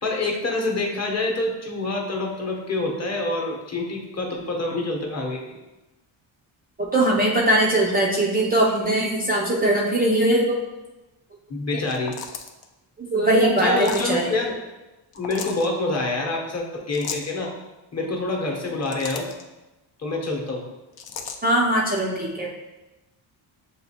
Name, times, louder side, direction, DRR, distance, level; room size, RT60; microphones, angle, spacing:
voice 1, 0.0-5.6 11.5-12.1 13.6-14.6 15.1-17.5 17.9-19.3 20.0-20.7, left 2 dB, 30° left, 0 dB, 0.9 m, -26 dB
voice 2, 6.8-10.6 13.0-14.3 21.4-22.5, right 1 dB, 20° right, -3 dB, 0.4 m, -21 dB
sound 1, 11.9-12.7 13.7-14.1 15.1-15.7 16.9-17.3 18.6-19.4 21.0-21.4, left 6 dB, 50° left, 0.5 m, -35 dB
6.9 x 2.4 x 2.8 m, 1.0 s
cardioid pair, 115°, 48 cm